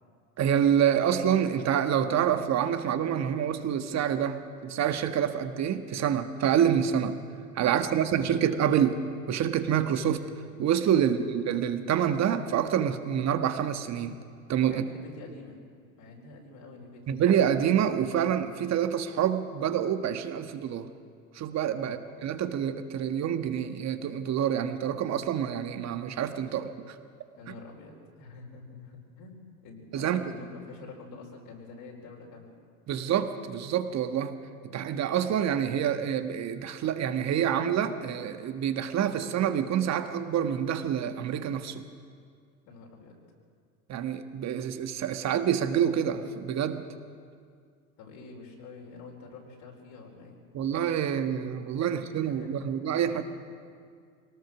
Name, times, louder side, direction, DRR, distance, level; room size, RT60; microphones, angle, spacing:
voice 1, 0.4-7.2 7.5-9.0 9.3-10.3 10.6-14.2 14.5-14.8 17.1-20.9 21.3-27.0 29.9-30.2 32.9-34.3 34.6-41.8 43.9-46.8 50.5-53.2, right 9 dB, 40° right, 8 dB, 1.6 m, -27 dB
voice 2, 7.6-8.2 14.7-15.6 16.0-17.3 21.8-22.0 27.3-32.5 42.7-43.2 48.0-50.4 51.8-52.7 53.1-53.2, left 3 dB, 55° left, -1 dB, 4.9 m, -47 dB
23.0 x 19.0 x 6.3 m, 2.1 s
hypercardioid pair, 80°, 43 cm